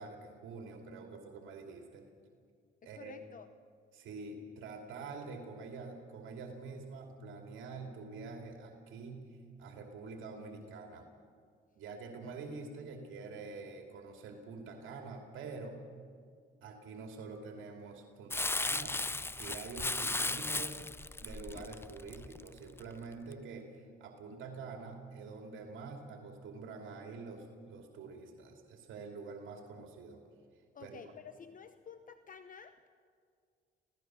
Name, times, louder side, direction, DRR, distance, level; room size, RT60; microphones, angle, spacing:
voice 1, 0.0-2.1 2.8-3.1 3.9-11.1 11.8-15.8 16.6-20.8 21.2-30.2 30.8-31.1, right 4 dB, 80° right, 3 dB, 2.6 m, -46 dB
voice 2, 2.9-3.5 30.7-32.9, left 7 dB, 45° left, 10 dB, 0.9 m, -51 dB
Crumpling crinkling, 18.3-22.8 23.3-23.4, left 2 dB, 10° left, 0.5 m, -36 dB
26.0 x 17.0 x 6.2 m, 2.2 s
cardioid pair, 90°, 20 cm